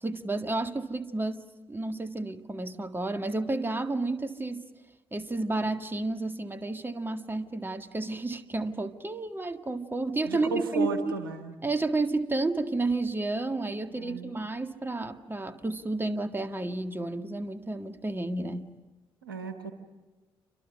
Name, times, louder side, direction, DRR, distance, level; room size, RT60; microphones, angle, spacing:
voice 1, 0.0-4.6 5.1-11.2 11.6-18.7, right 2 dB, 20° right, 8 dB, 1.9 m, -31 dB
voice 2, 10.2-11.5 14.0-14.4 19.2-19.7, right 4 dB, 85° right, 6 dB, 1.6 m, -35 dB
29.0 x 26.0 x 6.4 m, 1.2 s
figure-of-eight pair, 40°, 11 cm